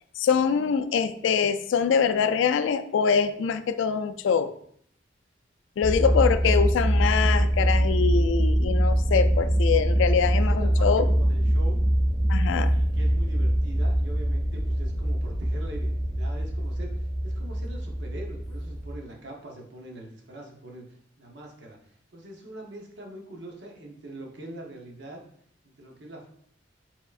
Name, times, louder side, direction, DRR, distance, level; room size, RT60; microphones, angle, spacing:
voice 1, 0.2-4.5 5.8-11.1 12.3-12.7, left 6 dB, 80° left, 11 dB, 0.3 m, -24 dB
sound 1, 5.8-19.0, equal, 15° right, 0.4 m, -24 dB
voice 2, 5.8-6.9 10.3-11.8 12.7-20.8 21.2-21.8 22.1-25.2 25.6-26.3, right 1 dB, 65° right, 0 dB, 0.9 m, -43 dB
4.6 x 3.6 x 2.4 m, 0.65 s
head